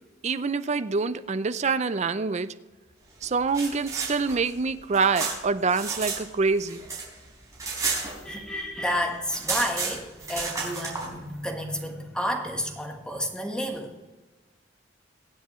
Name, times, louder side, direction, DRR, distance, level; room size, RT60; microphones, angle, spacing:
voice 1, 0.2-2.5 3.2-6.8, right 4 dB, 35° right, 13 dB, 0.5 m, -26 dB
sound 1, 3.3-6.2 6.5-8.7 8.9-9.0 9.2-11.1, right 4 dB, 20° right, 4.2 m, -32 dB
voice 2, 8.2-13.9, equal, 5° left, 2 dB, 1.4 m, -31 dB
23.0 x 8.2 x 3.1 m, 1.2 s
head